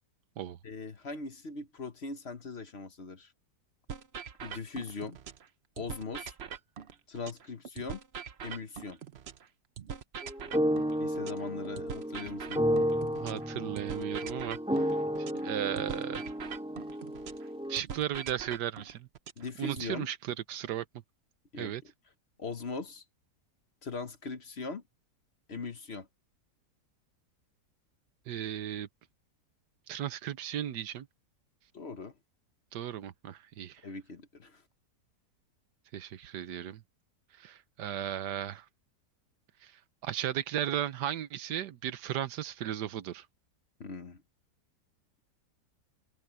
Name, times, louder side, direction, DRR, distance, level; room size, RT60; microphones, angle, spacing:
voice 1, 0.6-3.3 4.4-5.2 5.8-6.4 7.1-8.0 8.4-9.0 11.0-12.8 19.4-20.1 21.5-21.9 22.4-23.0 23.8-24.8 25.5-26.1 31.7-32.1 33.8-34.6 43.8-44.2, left 4 dB, 45° left, 1.2 m, -40 dB
sound 1, 3.9-5.5 5.8-9.5 9.8-13.5 13.8-17.5 17.8-19.9, right 7 dB, 45° right, 0.9 m, -43 dB
sound 2, 10.2-17.8, equal, 5° right, 2.3 m, -32 dB
voice 2, 13.2-16.2 17.7-19.1 19.6-20.8 21.6-21.8 28.3-28.9 29.9-31.1 32.7-33.8 35.9-36.8 37.4-38.6 39.6-39.7 40.0-43.3, right 11 dB, 85° right, 1.5 m, -36 dB
omnidirectional pair, 1.8 m